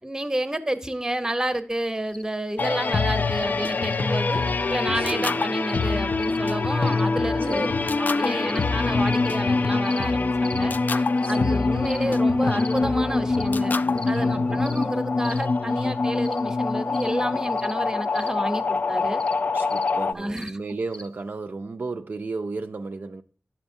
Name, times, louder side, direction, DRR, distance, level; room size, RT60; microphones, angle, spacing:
voice 1, 0.0-4.4 4.7-7.7 8.0-13.7 14.1-19.2 20.1-20.6, right 1 dB, 15° right, 0.8 m, -30 dB
sound 1, 2.1-2.2 2.6-2.7 3.4-3.5 3.9-4.0 4.4-4.5 4.9-5.1 5.6-5.8 6.2-6.4 6.8-7.0 7.4-7.7 8.4-8.6 9.1-9.3 9.8-10.1 10.4-10.6 11.2-11.4 11.8-12.0 12.6-12.8 13.3-13.5 14.0-14.2 14.6-14.9 15.2-15.5 16.2-16.4 16.9-17.1 17.6-17.7 18.1-18.3 19.2-19.3 19.7-19.9 20.4-20.5 20.9-21.1, left 1 dB, 25° left, 0.7 m, -42 dB
sound 2, 2.6-20.1, left 3 dB, 45° left, 0.3 m, -24 dB
voice 2, 4.9-5.5 7.4-7.9 11.2-11.7 14.3-14.8 19.5-23.2, right 3 dB, 45° right, 0.3 m, -34 dB
9.9 x 7.1 x 2.6 m
wide cardioid pair, 85°, 4 cm